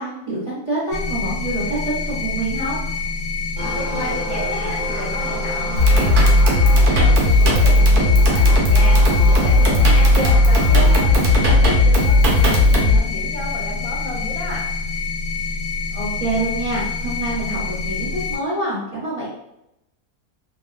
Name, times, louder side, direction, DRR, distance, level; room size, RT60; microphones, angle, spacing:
voice 1, 0.0-2.8 10.1-10.3 15.9-19.3, right 2 dB, 30° right, -9 dB, 0.7 m, -26 dB
sound 1, 0.9-18.4, left 4 dB, 45° left, 0.4 m, -27 dB
sound 2, 3.6-11.0, right 2 dB, 70° right, 0.4 m, -32 dB
voice 2, 3.7-14.7, left 2 dB, 75° left, -2 dB, 1.1 m, -32 dB
sound 3, 5.8-13.0, left 1 dB, 85° right, 1.2 m, -14 dB
2.9 x 2.1 x 2.3 m, 0.84 s
omnidirectional pair, 1.6 m